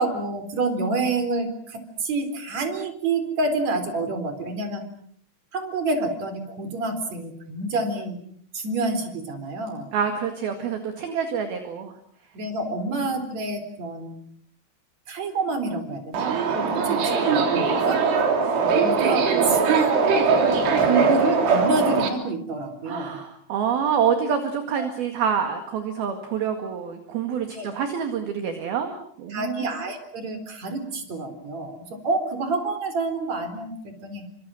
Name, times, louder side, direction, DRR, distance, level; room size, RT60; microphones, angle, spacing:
voice 1, 0.0-4.8 5.5-8.2 8.5-9.9 12.3-14.1 15.1-18.0 18.8-20.3 20.8-23.2 24.8-24.9 27.5-27.7 29.3-34.2, right 3 dB, 40° right, 8 dB, 4.7 m, -28 dB
voice 2, 9.9-11.9 12.9-13.0 22.9-29.7, right 7 dB, 60° right, 6 dB, 3.6 m, -27 dB
Subway metro underground, 16.1-22.1, right 5 dB, 85° right, 6.0 m, -21 dB
29.5 x 26.0 x 6.4 m, 0.62 s
omnidirectional pair, 5.5 m